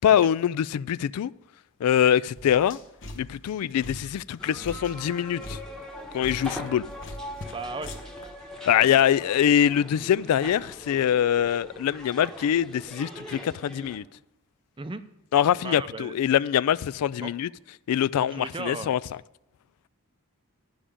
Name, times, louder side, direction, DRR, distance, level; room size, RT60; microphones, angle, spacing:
voice 1, 0.0-1.3 1.8-2.8 3.2-5.6 6.1-6.8 8.7-14.0 15.3-17.5 17.9-19.0, left 9 dB, 85° left, 0.3 m, -23 dB
sound 1, 2.4-8.3, left 1 dB, 55° left, 1.0 m, -42 dB
sound 2, 4.4-14.0, equal, ahead, 1.0 m, -41 dB
voice 2, 7.5-7.9 14.8-15.0 15.6-16.2 17.2-17.3 18.2-19.0, right 3 dB, 20° right, 0.5 m, -36 dB
11.0 x 5.0 x 8.6 m
head